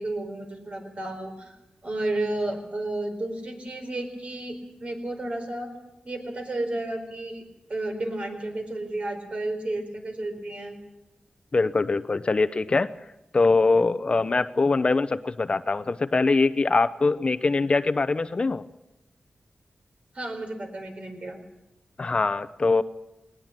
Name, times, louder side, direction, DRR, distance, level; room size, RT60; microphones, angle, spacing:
voice 1, 0.0-1.6 1.8-5.7 6.0-7.4 7.7-10.8 20.1-21.4, right 2 dB, 50° right, 5 dB, 4.4 m, -32 dB
voice 2, 11.5-12.9 13.3-18.6 22.0-22.8, left 3 dB, 40° left, 13 dB, 0.7 m, -23 dB
19.5 x 19.5 x 7.5 m, 0.96 s
wide cardioid pair, 95°, 3 cm